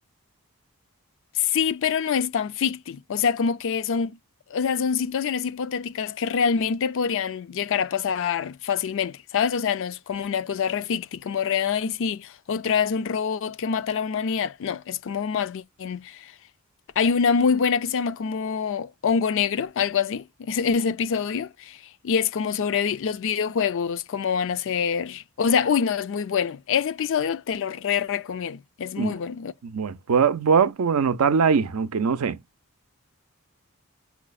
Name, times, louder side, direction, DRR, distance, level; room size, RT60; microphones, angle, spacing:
voice 1, 1.4-4.2 4.5-16.3 17.0-21.8 22.0-29.5, left 6 dB, 60° left, 0.4 m, -25 dB
voice 2, 29.6-32.4, right 6 dB, 85° right, 0.5 m, -22 dB
5.8 x 2.0 x 2.3 m
head